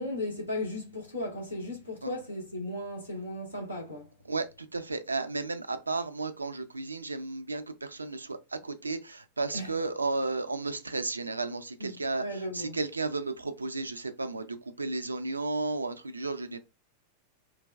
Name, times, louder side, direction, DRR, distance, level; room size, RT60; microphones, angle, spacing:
voice 1, 0.0-4.1 9.5-9.7 11.8-11.9 12.2-12.8, left 1 dB, 85° left, 1.3 m, -36 dB
voice 2, 4.2-16.6, right 3 dB, 80° right, 0.4 m, -33 dB
3.9 x 2.2 x 2.4 m
figure-of-eight pair, 90°, 0 cm